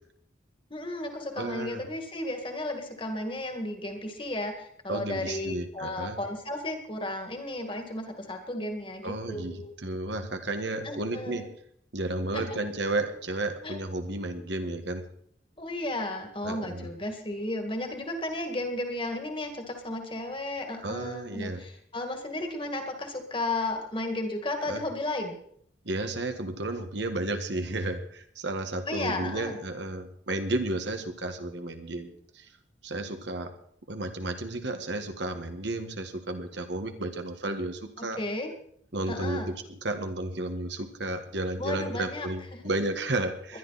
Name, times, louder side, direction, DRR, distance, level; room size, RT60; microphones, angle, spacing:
voice 1, 0.7-9.7 10.8-11.5 12.3-12.6 13.6-13.8 15.6-25.4 28.9-29.6 38.2-38.5 39.1-39.5 41.6-42.3, left 1 dB, 30° left, 5 dB, 2.1 m, -34 dB
voice 2, 1.3-1.9 4.9-6.2 9.0-11.5 11.9-15.0 16.4-16.9 20.8-21.6 24.6-24.8 25.8-32.5 32.8-33.6 33.9-38.2 38.9-43.6, right 2 dB, 70° right, 6 dB, 1.6 m, -32 dB
21.0 x 11.5 x 4.2 m, 0.65 s
head